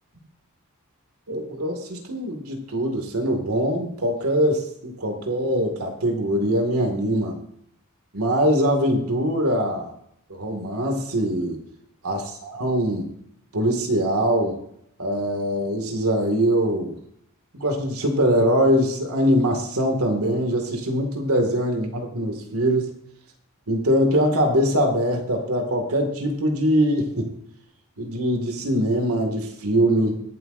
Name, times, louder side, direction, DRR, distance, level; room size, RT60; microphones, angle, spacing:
voice 1, 1.3-7.4 8.1-9.9 10.3-11.6 12.0-13.1 13.5-14.6 15.0-17.0 17.5-22.9 23.7-27.3 28.0-30.2, equal, 85° right, 3 dB, 2.1 m, -22 dB
23.0 x 8.0 x 2.6 m, 0.74 s
head